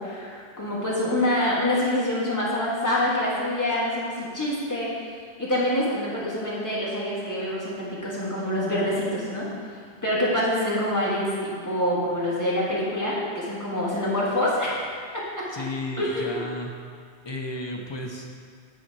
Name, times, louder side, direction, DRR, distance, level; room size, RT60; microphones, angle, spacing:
voice 1, 0.0-4.9 5.4-14.8 15.1-15.2 16.0-16.4, left 1 dB, 15° left, -7 dB, 1.6 m, -26 dB
voice 2, 15.5-16.7 17.2-18.4, left 2 dB, 30° left, 1 dB, 0.5 m, -33 dB
9.0 x 4.2 x 4.6 m, 2.1 s
omnidirectional pair, 1.1 m